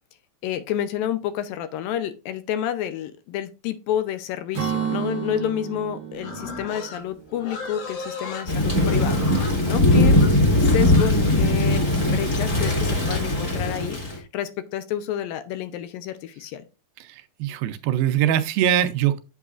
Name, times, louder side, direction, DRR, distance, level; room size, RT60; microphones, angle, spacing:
voice 1, 0.4-9.2 9.7-10.2 10.6-16.6, left 10 dB, 80° left, 2.3 m, -29 dB
Acoustic guitar / Strum, 4.5-8.2, right 8 dB, 65° right, 1.2 m, -32 dB
Livestock farm animals working animals, 6.2-12.2, left 4 dB, 60° left, 3.0 m, -37 dB
Thunder / Rain, 8.5-14.2, left 1 dB, 25° left, 2.1 m, -20 dB
voice 2, 17.0-19.2, right 10 dB, 80° right, 2.4 m, -22 dB
8.1 x 7.3 x 2.4 m
omnidirectional pair, 4.3 m